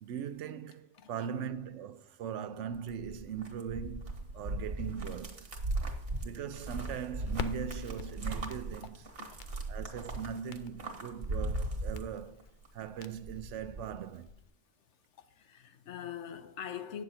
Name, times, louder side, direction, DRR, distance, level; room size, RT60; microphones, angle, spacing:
voice 1, 0.0-5.5 6.2-9.0 9.7-12.5 12.7-14.3, right 8 dB, 85° right, 1.0 m, -40 dB
sound 1, 2.7-12.7 13.0-13.9, right 2 dB, 55° right, 1.5 m, -38 dB
Crackle, 7.2-14.5, left 6 dB, 55° left, 0.6 m, -47 dB
voice 2, 15.2-17.0, left 9 dB, 80° left, 1.1 m, -43 dB
8.8 x 6.8 x 4.1 m
omnidirectional pair, 1.2 m